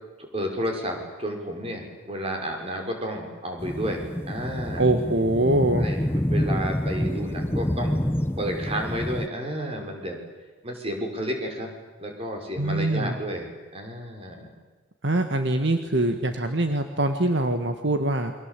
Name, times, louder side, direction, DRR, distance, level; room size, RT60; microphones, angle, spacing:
voice 1, 0.3-4.9 5.8-8.0 8.4-10.2 10.6-11.7 12.0-14.5, equal, 30° right, 3 dB, 5.9 m, -31 dB
sound 1, 3.6-9.3, equal, 10° left, 0.9 m, -27 dB
voice 2, 4.8-5.9 12.6-13.2 15.0-18.3, right 2 dB, 65° right, 6 dB, 1.7 m, -23 dB
29.5 x 24.0 x 8.5 m, 1.3 s
head